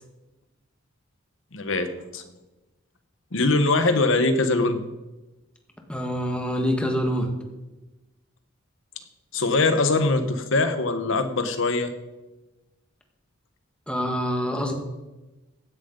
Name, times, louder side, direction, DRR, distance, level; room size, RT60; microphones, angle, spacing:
voice 1, 1.5-2.2 3.3-4.8 9.3-11.9, left 3 dB, 70° left, 9 dB, 1.2 m, -22 dB
voice 2, 5.9-7.3 13.9-14.7, equal, 5° left, 2 dB, 1.8 m, -25 dB
16.0 x 10.5 x 4.0 m, 1.1 s
head